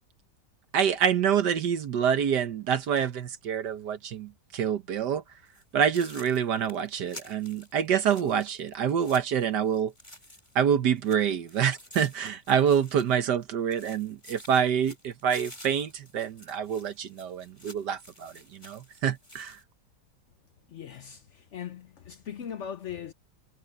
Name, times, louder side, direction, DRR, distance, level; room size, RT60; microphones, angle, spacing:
voice 1, 0.7-5.2 5.7-9.9 10.5-19.6, right 8 dB, 70° right, 1.6 m, -27 dB
sound 1, 5.5-5.6 5.9-10.7 11.0-13.4 13.7-19.6, left 1 dB, 15° left, 5.3 m, -51 dB
voice 2, 20.7-23.1, left 8 dB, 65° left, 0.7 m, -39 dB
omnidirectional pair, 1.9 m